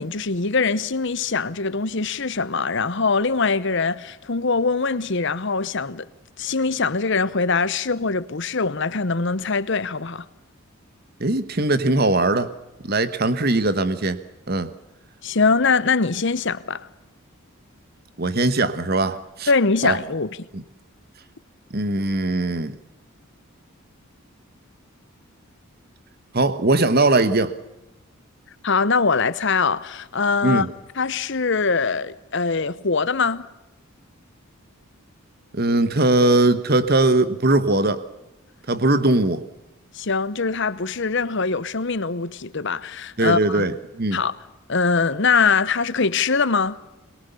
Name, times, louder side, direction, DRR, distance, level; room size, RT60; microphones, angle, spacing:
voice 1, 0.0-6.1 6.4-10.2 15.2-16.9 19.5-20.4 28.6-30.7 31.0-33.4 39.9-43.7 44.1-44.4 44.7-46.8, left 4 dB, 55° left, 0.9 m, -22 dB
voice 2, 11.2-12.5 12.8-14.2 14.5-14.7 18.2-19.5 19.8-20.0 20.5-20.6 21.7-22.8 26.3-27.5 30.4-30.7 35.5-38.0 38.7-39.4 43.2-43.7 44.0-44.2, right 2 dB, 45° right, 1.2 m, -20 dB
22.5 x 22.5 x 6.9 m
head